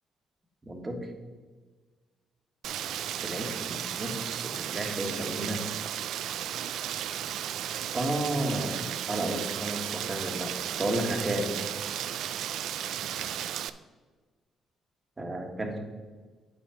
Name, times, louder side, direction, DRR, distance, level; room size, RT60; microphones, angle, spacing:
voice 1, 0.7-1.0 3.1-5.6 7.9-11.5 12.2-12.4 15.2-15.8, right 1 dB, 25° right, 3 dB, 1.5 m, -32 dB
Rain, 2.6-13.7, right 10 dB, 80° right, 0.3 m, -34 dB
8.4 x 5.7 x 5.0 m, 1.4 s
cardioid pair, 90°, 0 cm